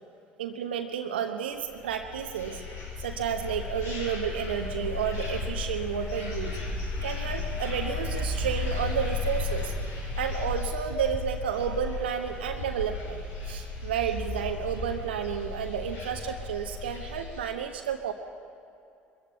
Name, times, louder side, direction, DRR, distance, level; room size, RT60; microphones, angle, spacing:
voice 1, 0.4-2.6 3.0-6.6 7.0-9.7 10.2-18.1, right 8 dB, 75° right, 4 dB, 1.2 m, -31 dB
sound 1, 1.7-17.4, left 3 dB, 60° left, 7.2 m, -34 dB
23.0 x 14.5 x 8.3 m, 2.6 s
figure-of-eight pair, 60°, 6 cm